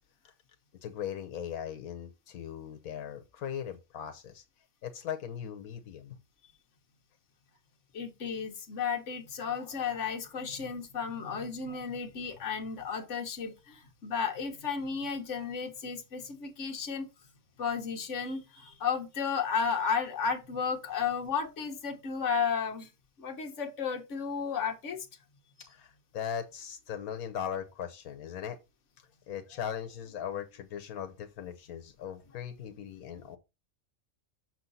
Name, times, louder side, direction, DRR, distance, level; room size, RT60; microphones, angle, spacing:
voice 1, 0.8-4.4 4.8-6.2 25.6-28.6 29.0-33.4, left 8 dB, 85° left, 1.3 m, -39 dB
voice 2, 7.9-17.1 17.6-22.9 23.2-25.1, left 6 dB, 55° left, 1.6 m, -33 dB
6.4 x 6.0 x 4.1 m
omnidirectional pair, 1.5 m